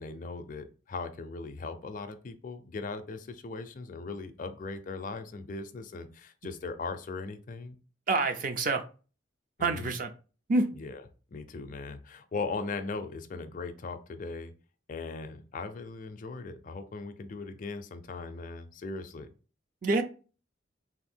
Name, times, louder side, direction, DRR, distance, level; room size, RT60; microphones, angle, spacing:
voice 1, 0.0-7.8 9.6-9.9 10.7-11.0 11.3-14.5 14.9-19.3, left 3 dB, 45° left, 0.4 m, -39 dB
voice 2, 8.1-8.8 9.6-10.1 10.5-10.7 19.8-20.0, right 3 dB, 45° right, 0.4 m, -26 dB
3.5 x 2.5 x 4.3 m
head